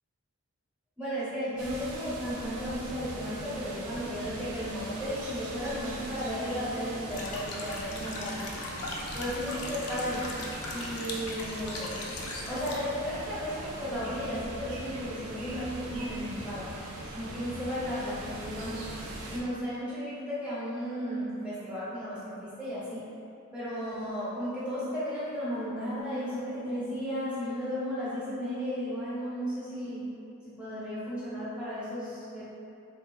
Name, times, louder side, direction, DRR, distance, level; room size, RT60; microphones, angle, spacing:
voice 1, 1.0-8.4 9.1-10.3 10.7-11.9 12.5-16.7 17.1-18.9 19.3-23.0 23.5-30.0 30.6-32.4, equal, 5° right, -11 dB, 0.8 m, -34 dB
sound 1, 1.6-19.4, right 1 dB, 85° right, 0.5 m, -41 dB
sound 2, 7.1-12.8, left 2 dB, 85° left, 0.5 m, -39 dB
3.7 x 3.3 x 2.3 m, 2.6 s
head